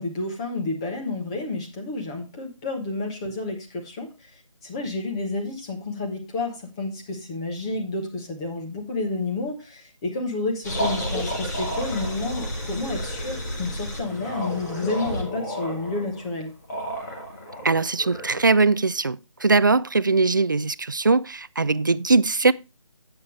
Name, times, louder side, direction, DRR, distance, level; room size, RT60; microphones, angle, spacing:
voice 1, 0.0-4.1 4.6-16.5, left 2 dB, 10° left, 0.9 m, -30 dB
sound 1, 10.6-18.5, equal, 35° left, 2.4 m, -31 dB
voice 2, 17.6-22.5, right 3 dB, 40° right, 0.3 m, -21 dB
9.5 x 8.0 x 3.2 m
figure-of-eight pair, 170°, 17 cm